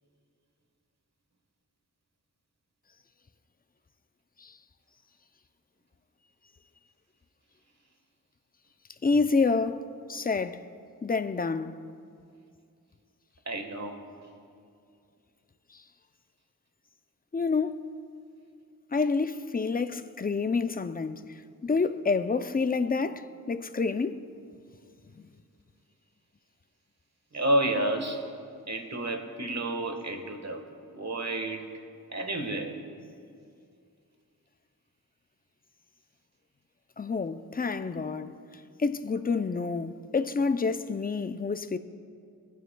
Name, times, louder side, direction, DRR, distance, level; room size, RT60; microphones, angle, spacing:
voice 1, 9.0-10.6 11.0-11.8 17.3-17.8 18.9-21.3 21.6-24.2 25.2-25.3 37.0-38.4 38.8-41.8, left 4 dB, 25° left, 0.4 m, -28 dB
voice 2, 13.5-14.0 27.3-28.2 28.7-30.6 30.9-31.6 32.1-32.7, right 1 dB, 50° right, 1.4 m, -30 dB
27.5 x 9.2 x 2.2 m
wide cardioid pair, 70°, 35 cm